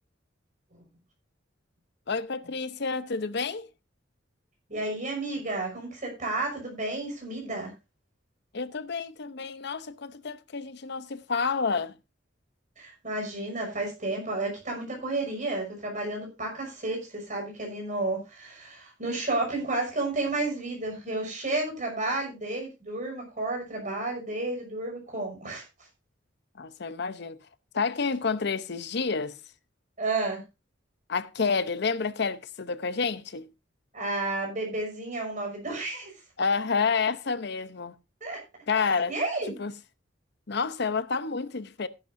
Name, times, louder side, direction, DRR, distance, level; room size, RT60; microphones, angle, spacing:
voice 1, 2.1-3.7 8.5-11.9 26.6-27.4 27.7-29.4 31.1-33.5 36.4-38.0 38.7-39.2 39.6-39.7 40.5-41.9, left 5 dB, 60° left, 0.8 m, -29 dB
voice 2, 4.7-7.7 12.8-25.6 30.0-30.4 33.9-36.1 38.2-38.4 39.1-39.6, right 2 dB, 40° right, 5.7 m, -31 dB
14.5 x 11.0 x 2.6 m
head